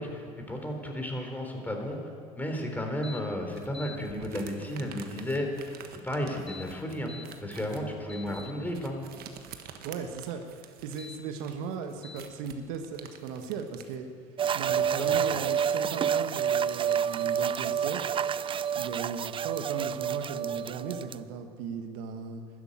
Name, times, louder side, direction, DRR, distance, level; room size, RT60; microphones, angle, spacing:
voice 1, 0.0-2.0 2.4-9.0 14.7-15.1, equal, 10° left, 2 dB, 3.7 m, -33 dB
sound 1, 3.0-3.2 3.6-4.0 6.3-7.3 7.8-8.5 10.8-11.2 12.0-12.2, left 5 dB, 30° left, 1.5 m, -45 dB
sound 2, 3.5-14.0, right 8 dB, 55° right, 1.4 m, -49 dB
voice 2, 9.8-14.1 14.5-18.0 18.7-22.4, right 6 dB, 75° right, 6 dB, 1.4 m, -37 dB
sound 3, 14.4-21.1, right 8 dB, 30° right, 0.4 m, -29 dB
13.0 x 10.5 x 9.2 m, 2.1 s
hypercardioid pair, 80°, 18 cm